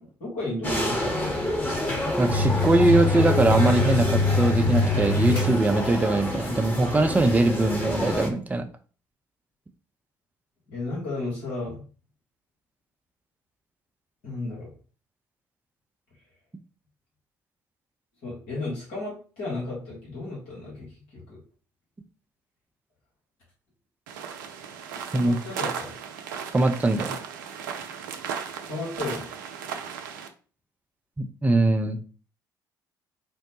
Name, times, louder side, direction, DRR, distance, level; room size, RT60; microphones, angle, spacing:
voice 1, 0.2-1.4 10.7-11.8 14.2-14.7 18.2-21.4 25.2-25.9 28.7-29.3, left 2 dB, 70° left, -6 dB, 1.5 m, -33 dB
sound 1, 0.6-8.3, left 1 dB, 15° left, 1.1 m, -29 dB
voice 2, 2.2-8.7 25.1-25.4 26.5-27.2 31.2-32.0, right 2 dB, 15° right, 6 dB, 0.4 m, -22 dB
sound 2, 2.3-6.1, left 3 dB, 45° left, 1.5 m, -24 dB
sound 3, 24.1-30.3, right 7 dB, 80° right, 0.4 m, -36 dB
3.7 x 2.1 x 2.9 m, 0.38 s
hypercardioid pair, 50°, 10 cm